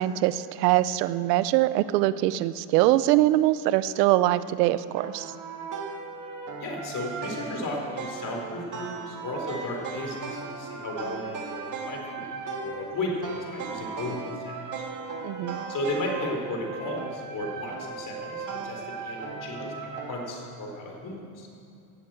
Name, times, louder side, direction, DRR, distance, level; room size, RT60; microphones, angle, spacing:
voice 1, 0.0-5.3 15.2-15.6, right 15 dB, 85° right, 15 dB, 0.7 m, -23 dB
sound 1, 5.0-20.2, right 4 dB, 40° right, 2.2 m, -37 dB
voice 2, 6.6-11.6 11.9-12.2 12.5-14.6 15.7-21.5, left 2 dB, 40° left, 1 dB, 4.0 m, -34 dB
17.0 x 7.5 x 7.9 m, 2.6 s
supercardioid pair, 100°, 47 cm